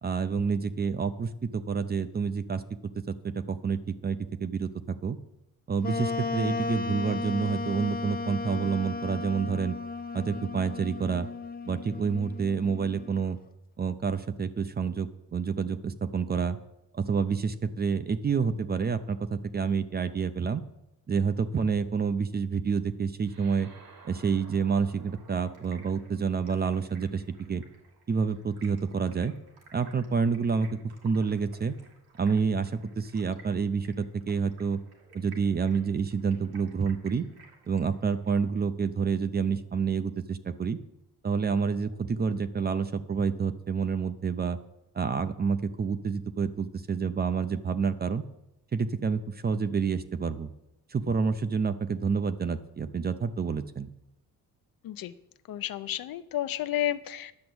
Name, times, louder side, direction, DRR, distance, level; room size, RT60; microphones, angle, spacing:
voice 1, 0.0-2.6 2.9-5.2 5.7-9.8 10.1-11.3 11.7-13.4 13.8-16.6 16.9-20.6 21.1-23.7 24.0-27.2 27.5-27.6 28.1-29.3 29.7-30.8 31.0-31.7 32.2-34.8 35.1-37.3 37.7-40.8 41.2-44.6 44.9-48.2 48.7-50.5 50.9-53.9, right 5 dB, 25° right, 12 dB, 0.5 m, -28 dB
Wind instrument woodwind instrument, 5.8-13.2, left 4 dB, 25° left, 0.5 m, -35 dB
sound 1, 23.2-28.0, right 4 dB, 70° right, 2.2 m, -56 dB
Stream, 25.1-38.5, right 4 dB, 85° right, 2.5 m, -57 dB
voice 2, 55.5-57.3, left 12 dB, 70° left, 12 dB, 0.7 m, -31 dB
10.5 x 7.0 x 7.8 m, 0.86 s
wide cardioid pair, 155°, 36 cm